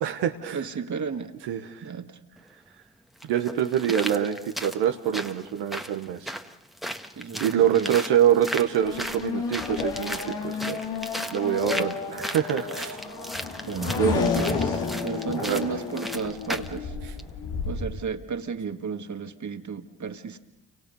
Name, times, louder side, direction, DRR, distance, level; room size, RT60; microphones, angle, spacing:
voice 1, 0.0-0.6 1.5-1.8 3.3-6.3 7.4-10.8 11.3-13.0 13.9-14.2 15.4-15.6, right 9 dB, 85° right, 4 dB, 1.3 m, -25 dB
voice 2, 0.5-1.5 1.8-2.2 7.2-8.0 11.7-12.0 13.6-17.0 17.6-20.4, right 6 dB, 45° right, 7 dB, 2.0 m, -33 dB
sound 1, 2.4-2.5 3.2-16.8 17.2-17.3, equal, ahead, 1.6 m, -36 dB
Race car auto racing / Accelerating revving vroom, 8.8-17.9, left 5 dB, 80° left, 3.1 m, -31 dB
29.5 x 25.5 x 5.5 m, 0.93 s
supercardioid pair, 50°, 41 cm